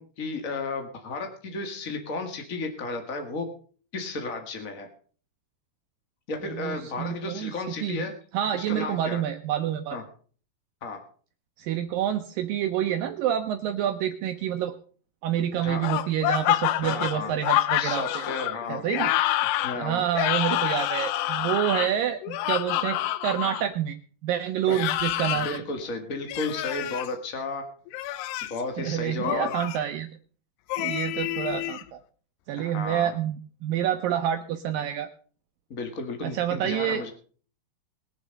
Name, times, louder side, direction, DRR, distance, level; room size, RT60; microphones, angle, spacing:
voice 1, 0.0-3.5 3.9-4.9 6.3-8.1 8.5-9.2 9.9-10.0 10.8-11.0 15.6-15.8 16.8-17.3 17.8-18.9 19.6-20.0 24.7-24.8 25.4-27.6 28.5-29.5 32.6-33.1 35.7-37.1, left 3 dB, 50° left, 5 dB, 0.9 m, -33 dB
voice 2, 6.4-7.5 7.8-8.0 8.3-10.0 11.6-14.7 15.2-18.3 18.7-19.1 19.7-24.0 24.2-25.6 28.8-30.1 30.8-32.0 32.5-35.1 36.2-37.0, right 10 dB, 75° right, 7 dB, 2.1 m, -28 dB
sound 1, 15.8-23.7 24.7-25.6 26.3-27.1 27.9-28.6 29.3-29.8 30.7-31.8, left 14 dB, 85° left, 2.8 m, -27 dB
21.5 x 7.3 x 5.3 m, 0.43 s
omnidirectional pair, 4.7 m